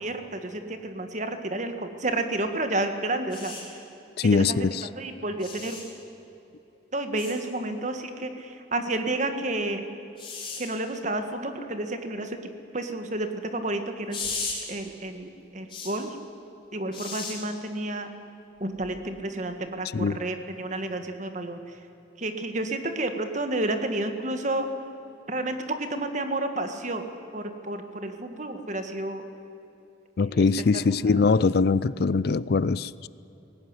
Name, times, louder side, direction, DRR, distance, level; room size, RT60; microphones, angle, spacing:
voice 1, 0.0-3.5 4.2-4.7 4.9-5.8 6.9-9.8 10.6-12.4 12.7-14.2 14.7-16.2 16.7-18.1 18.6-21.6 22.2-24.7 25.3-27.0 27.3-29.2 30.3-30.5 31.1-31.2, right 2 dB, 40° right, 7 dB, 1.8 m, -30 dB
sound 1, 3.3-3.6 5.4-5.8 7.2-7.3 10.2-10.6 14.1-14.5 15.7-15.9 16.9-17.3 18.8-19.0, left 4 dB, 25° left, 6.3 m, -35 dB
voice 2, 4.2-4.9 19.9-20.2 30.2-33.1, left 4 dB, 55° left, 19 dB, 0.4 m, -22 dB
20.0 x 18.0 x 9.7 m, 3.0 s
head